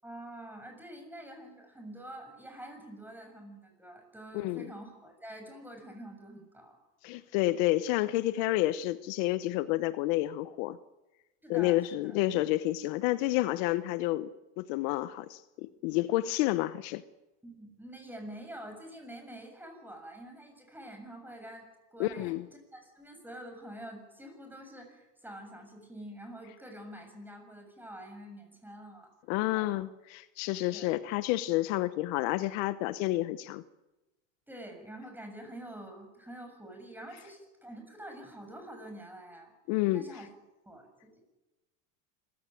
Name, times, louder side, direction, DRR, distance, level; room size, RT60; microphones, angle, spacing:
voice 1, 0.0-6.8 11.4-12.2 17.4-22.4 22.7-29.1 29.5-29.8 30.7-31.0 34.5-39.5 39.9-40.3 40.6-41.2, right 1 dB, 5° right, 4 dB, 7.0 m, -47 dB
voice 2, 4.3-4.7 7.0-10.8 11.5-14.3 14.6-17.0 22.0-22.5 29.3-33.6 39.7-40.1, left 17 dB, 70° left, 14 dB, 1.1 m, -29 dB
26.0 x 16.0 x 9.1 m, 1.0 s
supercardioid pair, 115°, 40 cm